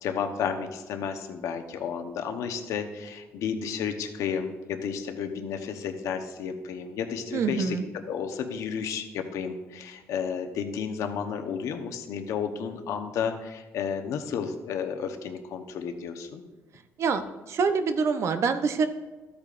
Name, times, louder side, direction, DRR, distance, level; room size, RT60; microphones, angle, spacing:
voice 1, 0.0-16.4, left 7 dB, 80° left, 6 dB, 0.9 m, -32 dB
voice 2, 7.3-7.9 17.0-17.2 17.5-18.9, right 5 dB, 60° right, 9 dB, 0.7 m, -25 dB
13.0 x 8.7 x 2.5 m, 1.2 s
cardioid pair, 90°, 5 cm